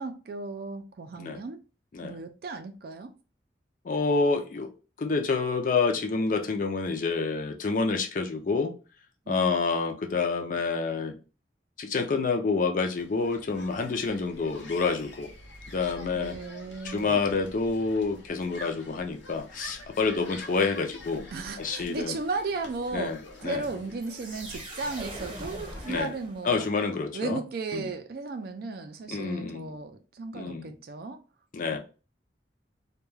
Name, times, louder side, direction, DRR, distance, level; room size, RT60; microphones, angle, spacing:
voice 1, 0.0-1.6 2.0-3.1 9.3-9.6 10.5-10.6 16.1-17.3 21.3-26.7 27.1-31.2 31.7-31.8, right 3 dB, 55° right, 0.4 m, -35 dB
voice 2, 3.8-4.7 5.0-8.7 9.3-11.2 11.8-15.3 15.7-16.3 16.8-21.3 21.6-22.2 22.9-23.2 23.4-23.6 25.9-26.1 26.4-27.4 27.7-27.8 29.1-29.8 30.3-30.8 31.5-31.8, left 4 dB, 45° left, 0.4 m, -28 dB
sound 1, 12.9-26.0, left 1 dB, 90° left, 0.6 m, -47 dB
sound 2, 24.0-26.8, right 1 dB, 30° right, 0.8 m, -42 dB
2.2 x 2.2 x 3.1 m
head